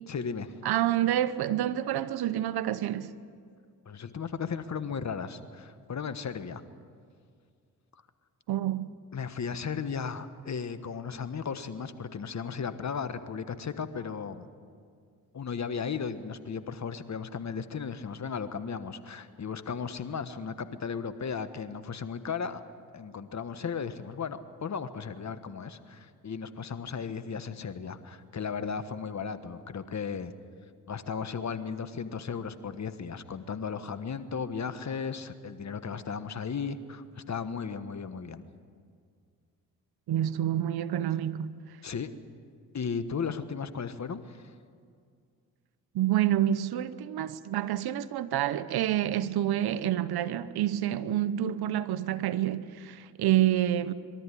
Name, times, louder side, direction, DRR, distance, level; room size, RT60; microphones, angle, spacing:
voice 1, 0.1-0.5 3.8-6.6 9.1-14.5 15.3-22.6 22.9-30.3 30.9-38.5 41.8-42.1 42.7-44.5, left 6 dB, 45° left, 1.4 m, -35 dB
voice 2, 0.6-3.1 8.5-8.9 40.1-41.5 45.9-53.9, right 12 dB, 75° right, 0.9 m, -28 dB
22.5 x 13.5 x 10.0 m
supercardioid pair, 60°, 38 cm